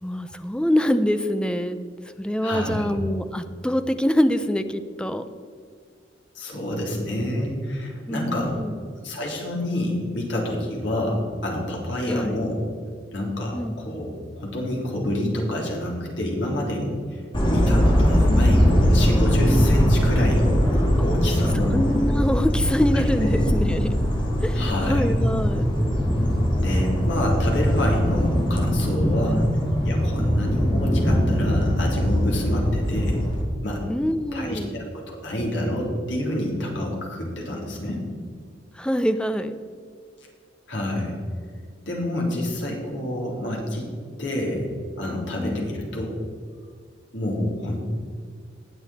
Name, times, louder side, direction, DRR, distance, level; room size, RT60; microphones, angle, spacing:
voice 1, 0.0-1.8 2.2-5.2 8.1-8.8 12.0-12.4 13.5-13.7 21.0-21.1 21.7-23.9 24.4-25.7 29.2-29.5 33.9-34.7 38.7-39.6 45.4-45.7, equal, 5° left, 10 dB, 0.5 m, -25 dB
voice 2, 2.4-2.8 6.3-8.5 9.0-12.6 13.1-14.1 14.3-17.2 17.5-21.8 22.9-23.4 24.5-25.0 26.6-29.4 29.8-33.2 33.6-33.8 34.3-38.0 40.7-41.2 41.9-43.9 44.2-44.7 45.0-46.2 47.1-47.8, left 1 dB, 80° left, -2 dB, 3.3 m, -27 dB
sound 1, 17.3-33.4, equal, 25° left, 2.3 m, -21 dB
19.0 x 7.1 x 4.2 m, 2.1 s
head